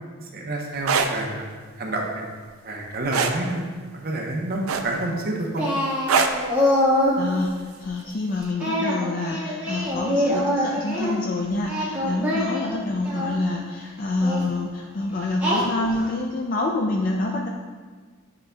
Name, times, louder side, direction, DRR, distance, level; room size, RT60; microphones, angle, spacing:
voice 1, 0.3-1.4 1.8-2.2 2.6-3.6 3.9-5.7, right 2 dB, 45° right, 1 dB, 0.9 m, -28 dB
sound 1, 0.7-1.1 3.1-3.4 4.7-5.1 6.1-6.4 7.8-8.0, right 5 dB, 80° right, 0.5 m, -21 dB
Singing, 5.6-7.2 8.6-11.1 11.6-13.4 14.2-14.5 15.4-16.1, left 1 dB, 10° right, 1.5 m, -24 dB
voice 2, 7.2-17.5, left 2 dB, 40° left, 0 dB, 0.4 m, -27 dB
9.4 x 5.0 x 2.3 m, 1.5 s
head